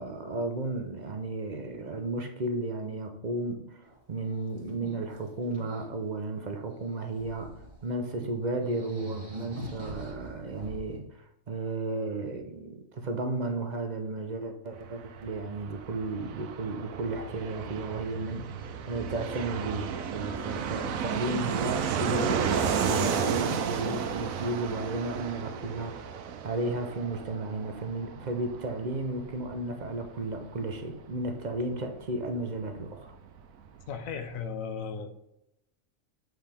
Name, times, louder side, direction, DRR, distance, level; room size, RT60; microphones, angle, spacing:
voice 1, 0.0-7.5 7.8-33.2, right 2 dB, 45° right, 5 dB, 0.6 m, -34 dB
sound 1, 3.8-4.0 4.3-5.8 6.8-7.8 8.2-8.3 8.6-11.0, right 1 dB, 25° right, 1.5 m, -42 dB
Fixed-wing aircraft airplane, 14.7-33.1 33.4-33.5 33.7-34.4, right 7 dB, 90° right, 1.1 m, -33 dB
voice 2, 33.9-35.2, left 6 dB, 85° left, 7 dB, 1.2 m, -36 dB
7.7 x 4.5 x 3.5 m, 0.84 s
omnidirectional pair, 1.4 m